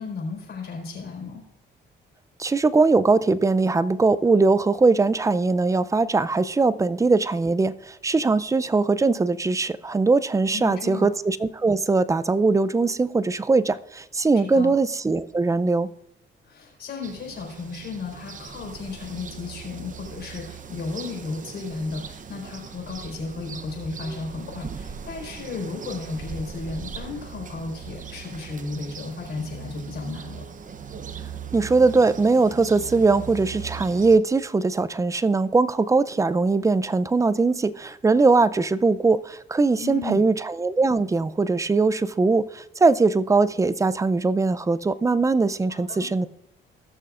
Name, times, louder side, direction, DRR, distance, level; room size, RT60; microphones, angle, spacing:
voice 1, 0.0-1.4 10.5-11.1 14.5-14.7 16.4-30.4 39.8-40.2 45.7-46.1, left 4 dB, 60° left, 0 dB, 4.3 m, -34 dB
voice 2, 2.4-15.9 31.5-46.3, right 3 dB, 15° right, 16 dB, 0.4 m, -21 dB
sound 1, 17.0-34.2, right 7 dB, 40° right, 0.8 m, -39 dB
19.5 x 6.7 x 2.5 m, 0.87 s
cardioid pair, 90°, 20 cm